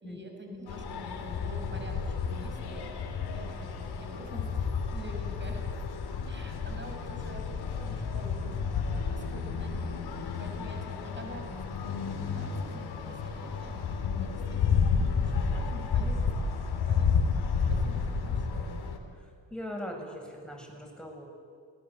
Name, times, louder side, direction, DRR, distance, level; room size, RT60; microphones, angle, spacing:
voice 1, 0.0-5.7 6.3-8.6 8.9-18.7, equal, 25° right, 2 dB, 5.6 m, -47 dB
sound 1, 0.7-19.0, left 5 dB, 70° left, 3.2 m, -31 dB
voice 2, 19.1-21.2, equal, ahead, 1 dB, 7.5 m, -41 dB
29.0 x 19.5 x 8.2 m, 2.2 s
hypercardioid pair, 45°, 40 cm